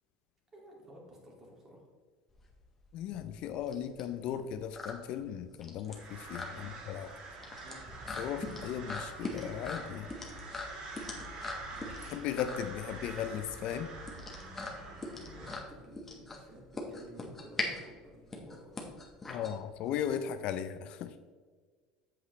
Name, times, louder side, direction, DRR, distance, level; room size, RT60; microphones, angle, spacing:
voice 1, 0.5-1.9 6.5-6.8 7.6-7.8 11.7-11.9 15.1-18.8, right 1 dB, 25° right, -1 dB, 2.3 m, -54 dB
sound 1, 2.3-20.1, left 3 dB, 15° left, 1.2 m, -42 dB
voice 2, 2.9-7.1 8.2-10.1 12.1-13.9 19.3-21.2, left 9 dB, 50° left, 10 dB, 0.5 m, -37 dB
sound 2, 5.9-15.6, right 2 dB, 45° right, 2.1 m, -46 dB
8.0 x 7.9 x 3.2 m, 1.5 s
cardioid pair, 150°, 2 cm